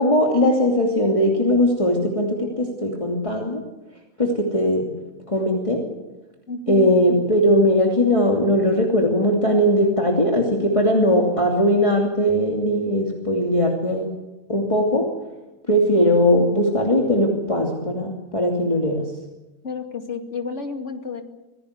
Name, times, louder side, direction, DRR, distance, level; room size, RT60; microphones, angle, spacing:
voice 1, 0.0-3.6 4.2-4.9 5.3-5.8 6.7-14.2 14.5-15.0 15.7-19.0, equal, 20° left, 0 dB, 2.8 m, -19 dB
voice 2, 6.5-6.9 19.6-21.2, left 4 dB, 45° left, 4 dB, 2.7 m, -30 dB
26.5 x 17.0 x 8.2 m, 1.1 s
omnidirectional pair, 1.7 m